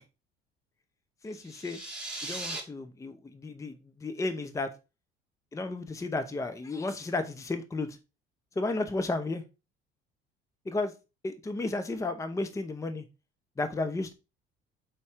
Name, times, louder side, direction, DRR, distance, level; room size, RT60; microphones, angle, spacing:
voice 1, 1.2-1.8 2.2-4.7 5.5-7.9 8.6-9.4 10.7-10.9 11.2-13.0 13.6-14.1, left 2 dB, 15° left, 8 dB, 0.8 m, -33 dB
sound 1, 1.4-2.6, right 2 dB, 5° right, 2.6 m, -38 dB
5.7 x 4.2 x 4.9 m, 0.29 s
cardioid pair, 115°, 20 cm